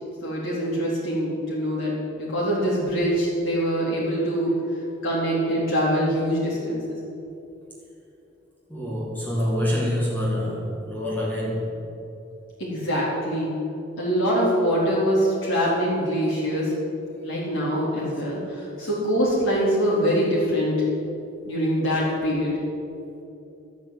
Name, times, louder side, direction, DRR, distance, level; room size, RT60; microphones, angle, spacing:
voice 1, 0.2-4.5 5.0-7.0 12.6-13.6 14.0-16.7 17.2-20.9 21.5-22.6, equal, 90° left, -8 dB, 3.7 m, -24 dB
voice 2, 8.7-11.8 18.8-18.9, left 1 dB, 10° left, -4 dB, 2.0 m, -26 dB
13.0 x 8.9 x 8.4 m, 2.8 s
head